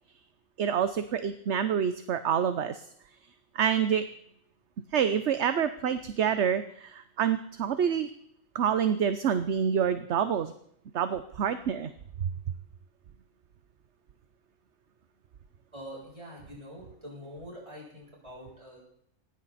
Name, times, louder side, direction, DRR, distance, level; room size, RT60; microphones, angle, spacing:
voice 1, 0.6-2.8 3.5-4.0 4.9-8.1 8.5-10.5 10.9-11.9 12.2-12.3, right 8 dB, 60° right, 11 dB, 1.1 m, -27 dB
voice 2, 15.7-18.9, equal, 25° right, -4 dB, 7.8 m, -45 dB
19.5 x 16.0 x 4.2 m, 0.70 s
omnidirectional pair, 1.4 m